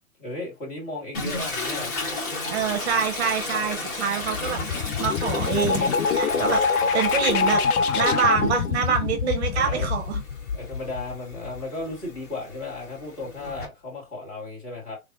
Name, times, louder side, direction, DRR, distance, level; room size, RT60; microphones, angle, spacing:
voice 1, 0.2-1.9 6.3-6.5 9.5-9.9 10.5-15.0, left 2 dB, 20° left, 1.3 m, -35 dB
Toilet flush, 1.1-9.0 9.4-13.7, left 2 dB, 40° left, 1.7 m, -34 dB
voice 2, 2.5-4.6 5.0-6.6 6.9-7.6 7.9-10.2, right 7 dB, 50° right, 0.7 m, -25 dB
sound 1, 4.2-11.9, left 5 dB, 85° left, 0.6 m, -25 dB
3.4 x 2.4 x 2.4 m
hypercardioid pair, 135°, 43 cm